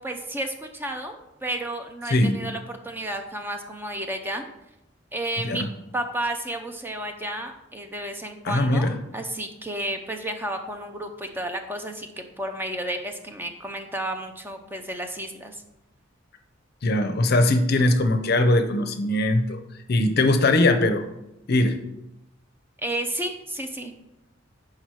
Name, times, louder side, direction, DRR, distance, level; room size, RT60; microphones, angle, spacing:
voice 1, 0.0-4.5 5.1-5.6 5.9-12.1 12.4-15.6 22.8-23.9, right 1 dB, 10° right, 5 dB, 0.5 m, -32 dB
voice 2, 8.4-8.9 16.8-19.6 19.9-21.1 21.5-21.8, left 2 dB, 55° left, 8 dB, 0.6 m, -21 dB
5.9 x 4.8 x 4.7 m, 0.90 s
head